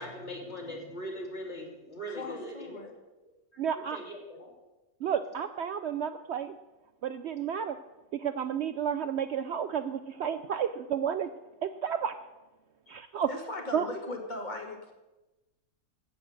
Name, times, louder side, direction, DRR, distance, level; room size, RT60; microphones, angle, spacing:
voice 1, 0.0-2.9 3.5-3.6 3.9-4.5, equal, 50° left, -1 dB, 3.4 m, -40 dB
voice 2, 2.2-2.9 12.9-14.9, left 2 dB, 30° left, 3 dB, 2.0 m, -39 dB
voice 3, 3.6-4.0 5.0-6.6 7.0-7.8 8.1-11.3 11.6-12.1 12.9-13.3 13.7-13.9, right 8 dB, 65° right, 10 dB, 0.7 m, -31 dB
15.0 x 8.5 x 6.4 m, 1.1 s
omnidirectional pair, 1.5 m